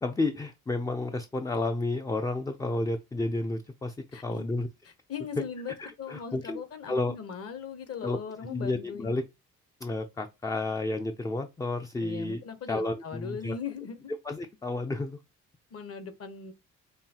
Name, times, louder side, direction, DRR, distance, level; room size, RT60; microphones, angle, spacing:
voice 1, 0.0-4.7 5.8-6.6 6.9-7.1 8.0-8.2 8.5-9.2 9.8-12.4 12.7-13.6 14.1-15.2, left 2 dB, 10° left, 0.3 m, -31 dB
voice 2, 4.1-4.5 5.1-9.2 12.0-14.0 15.7-16.5, left 6 dB, 50° left, 0.9 m, -39 dB
5.5 x 2.3 x 2.7 m
cardioid pair, 90°, 30 cm